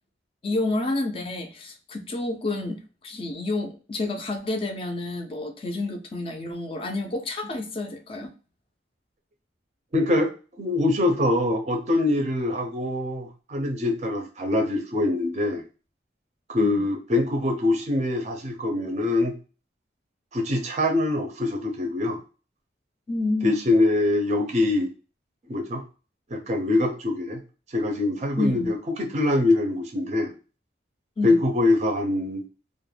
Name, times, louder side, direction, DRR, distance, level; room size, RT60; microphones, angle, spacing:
voice 1, 0.4-8.3 16.6-16.8 23.1-23.6 28.4-28.7 31.2-31.4, left 2 dB, 30° left, 6 dB, 0.3 m, -29 dB
voice 2, 9.9-10.3 10.6-15.6 16.5-19.3 20.3-22.2 23.4-24.9 25.5-25.8 26.3-27.4 27.7-30.3 31.2-32.4, left 2 dB, 35° right, 2 dB, 0.4 m, -24 dB
2.2 x 2.1 x 3.2 m, 0.34 s
head